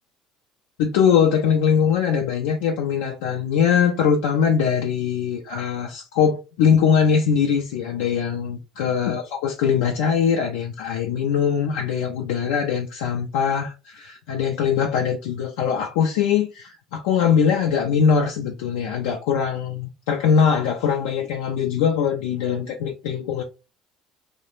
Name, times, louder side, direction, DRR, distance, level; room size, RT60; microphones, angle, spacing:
voice 1, 0.8-23.4, left 7 dB, 85° left, 0.4 m, -21 dB
2.3 x 2.0 x 2.9 m
supercardioid pair, 75°, 0 cm